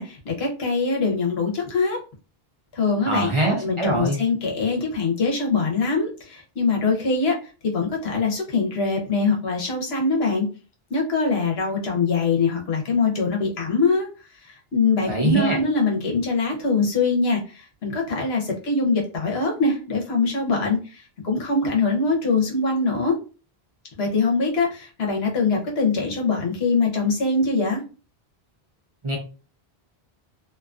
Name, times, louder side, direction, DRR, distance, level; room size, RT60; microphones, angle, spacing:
voice 1, 0.0-2.0 2.7-3.3 3.6-10.5 10.9-23.1 24.0-27.8, left 4 dB, 75° left, 0 dB, 1.1 m, -23 dB
voice 2, 3.1-4.2 15.1-15.6 29.0-29.2, right 2 dB, 35° right, -1 dB, 0.7 m, -23 dB
2.7 x 2.4 x 2.3 m, 0.34 s
omnidirectional pair, 1.1 m